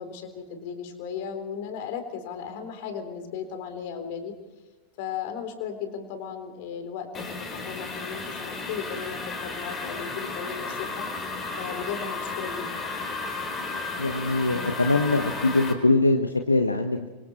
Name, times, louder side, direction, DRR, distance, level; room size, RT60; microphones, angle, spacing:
voice 1, 0.0-4.3 5.0-7.2 7.5-11.0 11.6-12.9, left 7 dB, 50° left, 7 dB, 3.9 m, -36 dB
sound 1, 7.1-15.7, left 3 dB, 20° left, 4.7 m, -33 dB
voice 2, 14.0-17.1, left 2 dB, 80° left, 7 dB, 1.3 m, -23 dB
29.5 x 25.0 x 4.4 m, 1.2 s
figure-of-eight pair, 90°, 0 cm